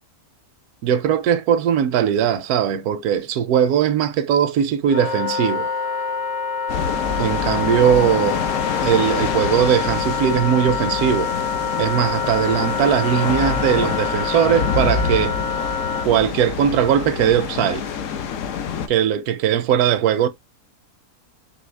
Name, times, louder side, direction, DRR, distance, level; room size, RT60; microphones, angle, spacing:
voice 1, 0.8-5.7 7.2-8.5 8.8-11.3 11.8-15.4 16.0-17.8 18.9-20.3, right 9 dB, 80° right, 1.1 m, -19 dB
Wind instrument woodwind instrument, 4.8-16.1, left 5 dB, 45° left, 0.4 m, -26 dB
sound 1, 6.7-18.9, left 6 dB, 65° left, 1.0 m, -26 dB
4.2 x 2.8 x 3.2 m
omnidirectional pair, 1.6 m